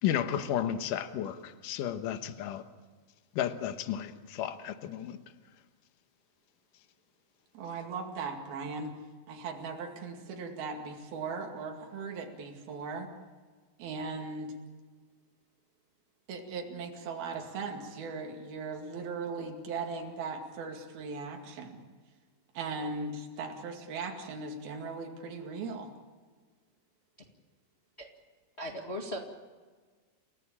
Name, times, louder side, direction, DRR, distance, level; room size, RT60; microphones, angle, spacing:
voice 1, 0.0-2.6 3.4-5.2, left 10 dB, 70° left, 9 dB, 2.6 m, -33 dB
voice 2, 7.5-9.0 9.3-13.1 13.8-14.5 16.3-21.8 22.5-25.9, right 4 dB, 80° right, 2 dB, 4.2 m, -38 dB
voice 3, 28.6-29.2, equal, 25° left, 1 dB, 1.4 m, -37 dB
30.0 x 16.5 x 8.7 m, 1.5 s
omnidirectional pair, 4.3 m